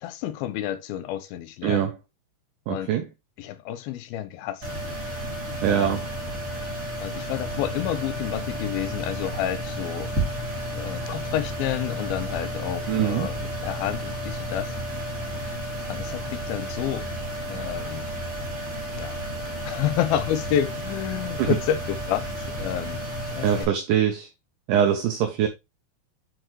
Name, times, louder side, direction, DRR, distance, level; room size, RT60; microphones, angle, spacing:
voice 1, 0.0-1.9 2.7-2.9 3.4-4.7 5.7-6.0 7.0-10.1 10.7-14.7 15.9-17.1 17.5-18.1 19.0-19.2 19.6-23.7, left 11 dB, 85° left, 2.5 m, -30 dB
voice 2, 1.6-2.0 2.7-3.1 5.6-6.1 12.9-13.3 21.4-21.6 23.4-24.3 24.7-25.5, right 9 dB, 75° right, 2.1 m, -23 dB
sound 1, 4.6-23.6, equal, 25° right, 2.9 m, -32 dB
7.7 x 4.6 x 3.0 m
omnidirectional pair, 4.3 m